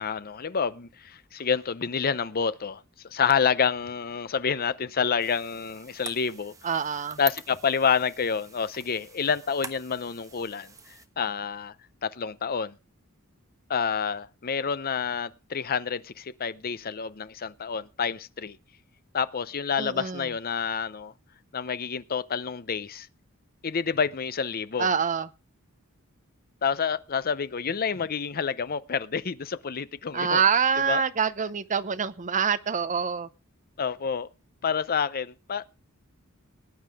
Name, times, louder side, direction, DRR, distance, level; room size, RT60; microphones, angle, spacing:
voice 1, 0.0-2.8 3.1-6.5 7.2-10.7 11.2-11.7 12.0-12.7 13.7-18.6 19.1-21.1 21.5-23.1 23.6-24.9 26.6-30.4 30.8-31.0 33.8-34.3 34.6-35.6, left 6 dB, 45° left, 0.7 m, -28 dB
sound 1, 5.2-11.1, right 4 dB, 15° right, 1.1 m, -44 dB
voice 2, 6.6-7.2 19.8-20.3 24.8-25.3 30.1-33.3, right 6 dB, 35° right, 0.7 m, -25 dB
19.0 x 9.6 x 3.5 m
head